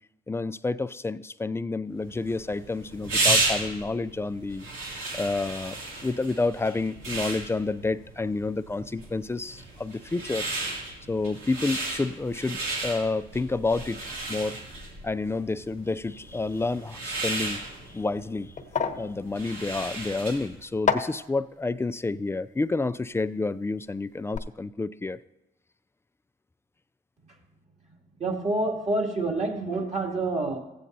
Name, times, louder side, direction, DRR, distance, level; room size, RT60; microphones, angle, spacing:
voice 1, 0.3-4.7 5.1-5.8 6.0-10.5 11.1-14.0 14.3-14.6 15.0-17.6 17.9-18.5 19.0-25.2, left 3 dB, 15° left, 14 dB, 0.3 m, -29 dB
sound 1, 2.0-20.6, right 2 dB, 90° right, 2.5 m, -33 dB
sound 2, 17.8-23.8 24.1-24.4, left 6 dB, 40° left, 0.9 m, -33 dB
voice 2, 28.2-30.6, right 2 dB, 35° right, -1 dB, 2.7 m, -27 dB
15.5 x 8.4 x 2.7 m, 0.95 s
cardioid pair, 90°, 20 cm